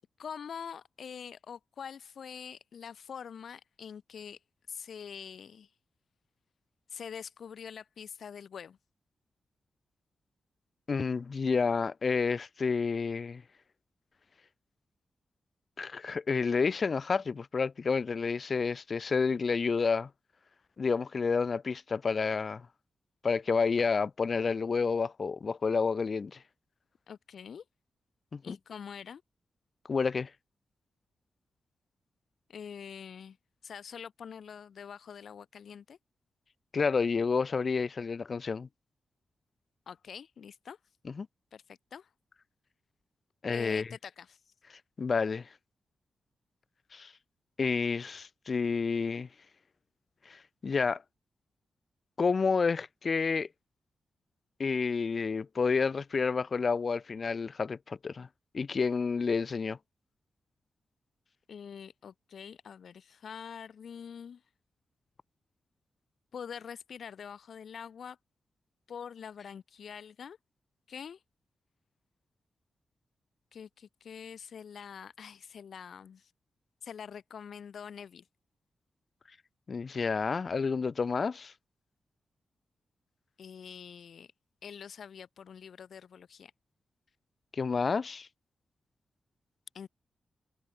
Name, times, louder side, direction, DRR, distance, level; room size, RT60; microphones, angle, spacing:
voice 1, 0.2-4.4 4.7-5.7 6.9-8.8 27.1-27.6 28.4-29.2 32.5-33.4 33.6-36.0 39.9-40.8 41.5-42.1 43.5-44.4 61.5-64.4 66.3-68.2 68.9-70.4 70.9-71.2 73.5-76.3 76.8-78.3 83.4-84.3 84.6-86.5 89.7-89.9, left 7 dB, 70° left, 4.8 m, -45 dB
voice 2, 10.9-13.4 15.8-20.1 20.8-22.7 23.2-26.4 28.3-28.6 29.9-30.3 36.7-38.7 41.2-41.3 43.4-43.9 45.0-45.5 46.9-47.1 47.6-49.3 50.3-51.0 52.2-53.5 54.6-58.3 58.5-59.8 79.7-81.5 87.5-88.3, left 5 dB, 50° left, 1.2 m, -29 dB
cardioid pair, 85°, 0 cm